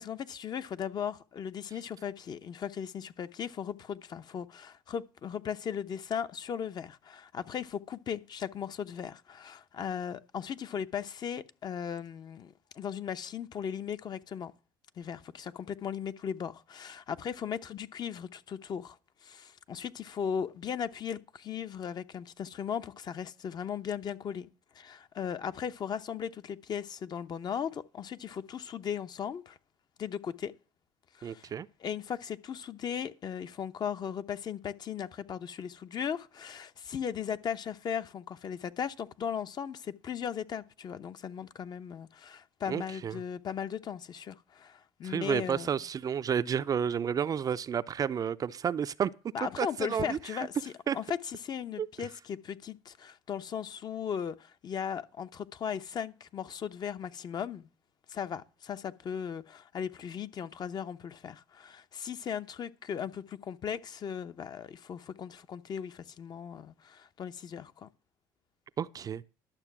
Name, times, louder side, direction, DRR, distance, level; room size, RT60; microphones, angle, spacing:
voice 1, 0.0-14.5 15.0-19.0 19.2-24.5 24.7-29.6 30.0-30.5 31.1-31.5 31.8-45.7 49.3-57.7 58.1-67.9, left 8 dB, 45° left, 0.8 m, -37 dB
voice 2, 31.2-31.7 42.7-43.2 45.0-49.1 49.4-50.5 50.9-51.0 51.8-51.9 68.8-69.2, right 8 dB, 35° right, 0.5 m, -31 dB
11.5 x 6.6 x 6.0 m
supercardioid pair, 85°, 10 cm